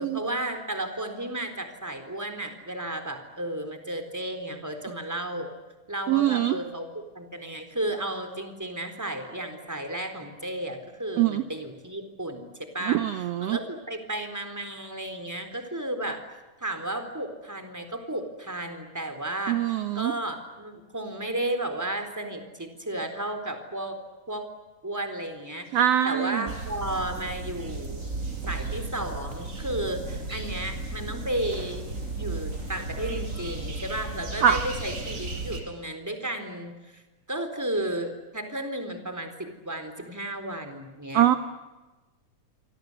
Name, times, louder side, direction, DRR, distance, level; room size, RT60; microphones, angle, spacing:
voice 1, 0.0-5.5 5.9-6.9 7.1-16.2 16.6-19.6 19.9-24.0 24.3-24.4 24.8-25.8 26.0-28.1 28.5-31.9 32.2-37.0 37.3-41.3, right 1 dB, 5° right, 6 dB, 3.7 m, -33 dB
voice 2, 6.1-6.6 11.2-11.4 12.9-13.6 19.5-20.1 25.7-26.4 34.4-34.6 41.1-41.4, right 11 dB, 65° right, 10 dB, 1.9 m, -23 dB
sound 1, 26.5-35.6, right 2 dB, 25° right, 5.0 m, -35 dB
28.0 x 24.5 x 8.1 m, 1.1 s
omnidirectional pair, 3.5 m